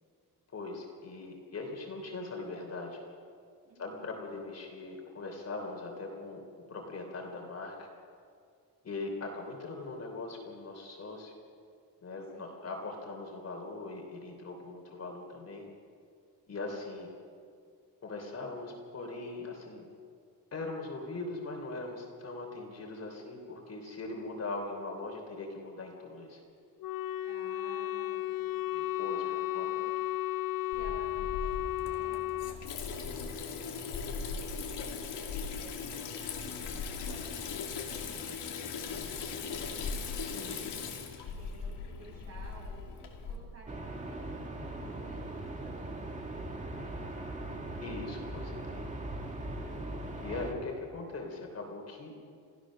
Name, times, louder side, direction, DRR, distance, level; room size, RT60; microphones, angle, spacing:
voice 1, 0.5-3.0 3.8-7.9 8.8-11.3 12.0-15.7 16.5-17.1 18.0-19.9 20.5-26.4 28.7-29.2 29.5-29.8 40.2-40.5 47.8-48.8 50.2-52.2, left 3 dB, 35° left, 1 dB, 3.3 m, -40 dB
voice 2, 3.6-4.2 12.3-12.7 27.2-28.9 29.2-29.9 30.7-38.4 38.8-40.0 40.3-40.7 41.4-47.2, right 2 dB, 35° right, -3 dB, 7.8 m, -55 dB
Wind instrument woodwind instrument, 26.8-32.6, left 14 dB, 55° left, 0.6 m, -34 dB
Water tap faucet / Sink (filling or washing), 30.7-43.4, left 5 dB, 85° left, 2.7 m, -39 dB
sound 1, 43.7-50.5, right 1 dB, 15° right, 2.0 m, -40 dB
28.0 x 16.0 x 6.4 m, 2.2 s
wide cardioid pair, 165°, 41 cm